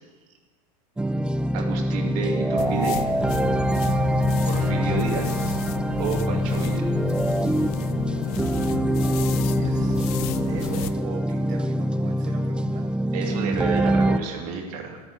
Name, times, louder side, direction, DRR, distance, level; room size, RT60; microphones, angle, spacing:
sound 1, 1.0-14.2, right 1 dB, 5° right, 0.4 m, -24 dB
voice 1, 1.5-3.0 4.5-5.5 6.0-6.9 13.1-15.0, right 5 dB, 70° right, 1 dB, 2.4 m, -30 dB
sound 2, 2.6-11.0, left 11 dB, 70° left, 0.6 m, -32 dB
voice 2, 9.6-12.9, right 6 dB, 40° right, 1 dB, 1.2 m, -39 dB
12.0 x 8.6 x 6.3 m, 1.4 s
supercardioid pair, 125°, 20 cm